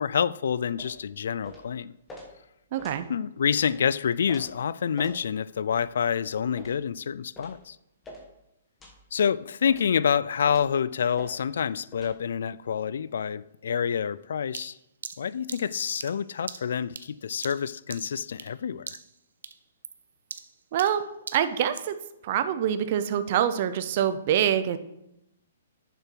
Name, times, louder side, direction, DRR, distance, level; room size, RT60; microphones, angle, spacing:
voice 1, 0.0-1.9 3.1-7.8 9.1-14.8 15.2-19.0, left 7 dB, 65° left, 0.4 m, -27 dB
sound 1, 0.8-1.0 1.4-1.7 2.1-2.3 2.8-3.0 3.6-3.8 4.3-4.5 5.0-5.2 5.7-5.9 6.6-6.8 7.4-7.6 8.0-8.3 8.8-9.0 9.7-9.9 10.5-10.7 11.2-11.3 11.9-12.1, left 1 dB, 10° left, 1.3 m, -44 dB
voice 2, 2.7-3.1 20.7-22.0 22.2-24.8, right 9 dB, 35° right, 0.6 m, -25 dB
sound 2, 14.5-18.6 18.9-19.2 19.4-22.0, right 6 dB, 85° right, 0.8 m, -42 dB
9.7 x 6.8 x 4.6 m
hypercardioid pair, 175°, 0 cm